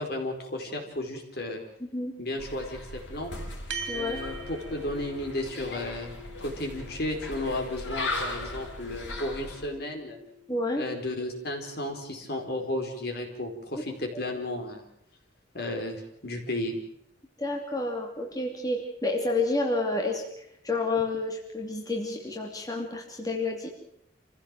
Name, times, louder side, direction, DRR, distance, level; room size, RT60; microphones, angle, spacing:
voice 1, 0.0-1.6 2.2-3.3 3.9-6.1 6.4-10.2 10.7-14.8 15.5-16.8, left 1 dB, 55° left, 3 dB, 4.5 m, -33 dB
voice 2, 1.8-2.1 3.9-4.2 10.5-10.8 17.4-20.2 20.6-23.7, left 2 dB, 20° left, 1 dB, 2.8 m, -29 dB
sound 1, 2.4-9.7, left 2 dB, 75° left, 6.0 m, -38 dB
sound 2, 3.7-12.4, right 2 dB, 85° right, 2.9 m, -44 dB
27.5 x 16.0 x 7.5 m, 0.74 s
head